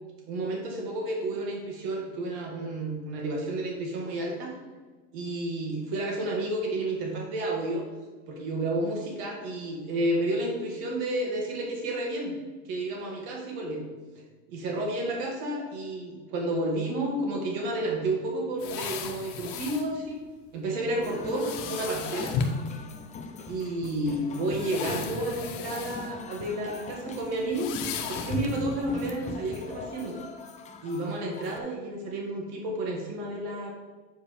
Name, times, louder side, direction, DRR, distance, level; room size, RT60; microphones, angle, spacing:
voice 1, 0.3-4.6 5.1-7.9 8.3-12.4 12.7-13.9 14.5-20.2 20.5-22.4 23.5-27.7 28.1-30.2 30.8-33.7, right 1 dB, 70° right, 0 dB, 1.7 m, -31 dB
sound 1, 18.6-19.9 21.3-22.6 23.6-23.7 24.4-26.1 26.5-26.7 27.5-28.7 29.1-29.2, left 5 dB, 75° left, 1.0 m, -34 dB
sound 2, 20.9-31.6, left 4 dB, 20° left, 0.5 m, -42 dB
8.1 x 4.8 x 3.5 m, 1.3 s
supercardioid pair, 135°, 37 cm